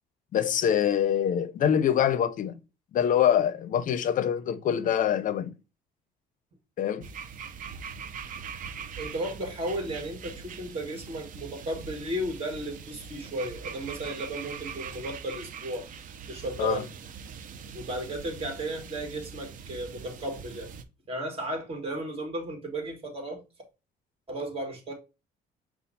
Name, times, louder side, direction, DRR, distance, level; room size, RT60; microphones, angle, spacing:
voice 1, 0.3-2.5 2.9-5.5 6.8-7.1 16.6-16.8, left 9 dB, 50° left, 0.5 m, -25 dB
sound 1, 7.0-20.8, right 6 dB, 50° right, 0.6 m, -42 dB
voice 2, 9.0-15.9 16.3-16.9 17.7-20.7 21.1-23.4 24.3-24.9, right 1 dB, 35° right, 1.8 m, -34 dB
5.6 x 2.3 x 4.0 m
cardioid pair, 110°, 17 cm